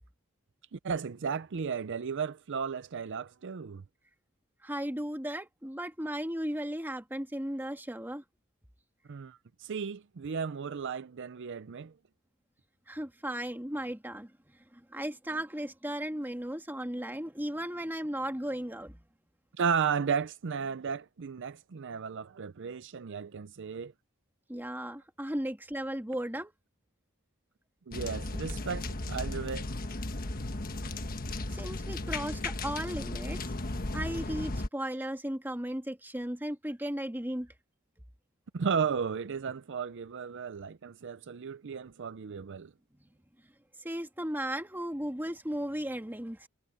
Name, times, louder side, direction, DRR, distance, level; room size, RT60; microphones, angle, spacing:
voice 1, 0.7-3.8 9.1-11.9 19.6-23.9 27.9-29.7 38.5-42.7, right 6 dB, 55° right, 0.5 m, -34 dB
voice 2, 4.6-8.2 12.9-19.0 24.5-26.5 31.5-33.4 33.9-37.5 43.8-46.5, right 1 dB, 10° right, 2.1 m, -36 dB
sound 1, 27.9-34.7, left 2 dB, 40° left, 1.4 m, -35 dB
head